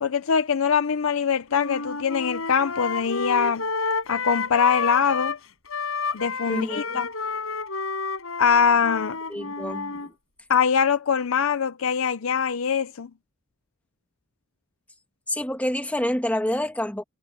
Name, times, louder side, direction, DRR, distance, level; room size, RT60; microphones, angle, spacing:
voice 1, 0.0-3.6 4.1-5.3 6.1-7.1 8.4-9.2 10.5-13.1, left 6 dB, 75° left, 0.6 m, -23 dB
sound 1, 1.5-5.4 5.7-10.1, left 4 dB, 90° left, 4.8 m, -30 dB
voice 2, 6.5-7.0 9.3-10.1 15.3-17.0, left 1 dB, 5° left, 1.4 m, -28 dB
head